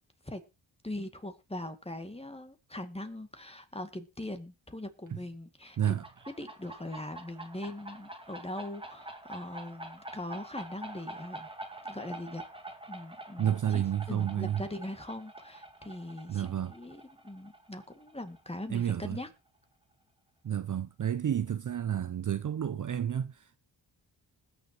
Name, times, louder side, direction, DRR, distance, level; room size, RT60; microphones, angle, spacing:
voice 1, 0.8-6.0 6.4-11.5 11.8-12.4 12.9-19.3, left 1 dB, 15° left, 2.2 m, -41 dB
sound 1, 5.6-19.0, right 1 dB, 10° right, 1.9 m, -46 dB
voice 2, 13.4-14.6 16.3-16.7 18.7-19.2 20.4-23.6, right 10 dB, 45° right, 0.6 m, -30 dB
20.5 x 7.0 x 3.0 m
cardioid pair, 50°, 44 cm